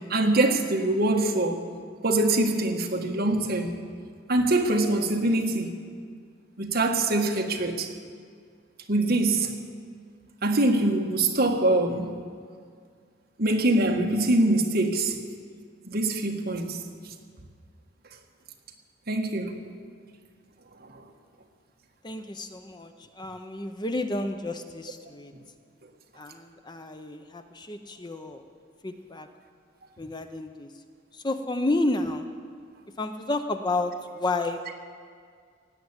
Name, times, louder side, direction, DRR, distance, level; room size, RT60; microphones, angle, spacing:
voice 1, 0.1-1.7 2.0-3.7 4.3-5.7 6.6-7.9 8.9-9.5 10.4-12.1 13.4-15.2 15.8-16.8 19.1-19.6 20.9-21.0, right 2 dB, 50° right, 2 dB, 1.5 m, -24 dB
voice 2, 22.0-25.3 26.1-28.4 28.8-29.3 30.0-30.7 31.1-32.3 33.0-34.7, left 2 dB, 20° left, 7 dB, 0.7 m, -31 dB
17.0 x 8.6 x 9.7 m, 2.1 s
head